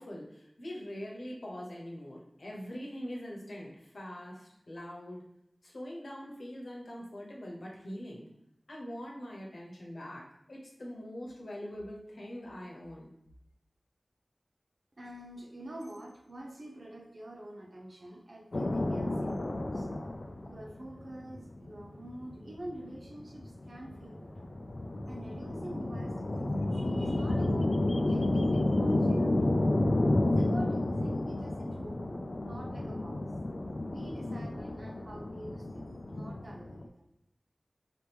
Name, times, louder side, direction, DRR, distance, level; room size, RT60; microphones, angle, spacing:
voice 1, 0.0-5.2 5.6-8.3 8.7-10.2 10.5-13.1, equal, 85° left, -2 dB, 1.0 m, -43 dB
voice 2, 15.0-19.9 20.4-24.5 25.1-29.8 30.2-33.3 33.9-37.0, right 1 dB, 65° right, 0 dB, 0.8 m, -47 dB
sound 1, 18.5-36.9, left 1 dB, 65° left, 0.4 m, -31 dB
4.9 x 3.0 x 3.4 m, 0.81 s
wide cardioid pair, 45°, 0 cm